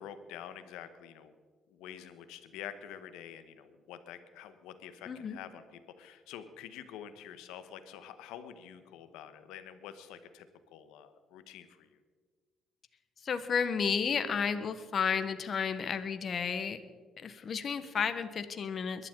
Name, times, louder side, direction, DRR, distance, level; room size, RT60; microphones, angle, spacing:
voice 1, 0.0-1.3 1.7-12.0 14.6-14.7, left 9 dB, 80° left, 11 dB, 1.1 m, -47 dB
voice 2, 5.1-5.4 13.2-16.8 17.2-19.1, left 6 dB, 55° left, 10 dB, 1.2 m, -32 dB
22.5 x 12.0 x 3.8 m, 1.5 s
hypercardioid pair, 55°, 0 cm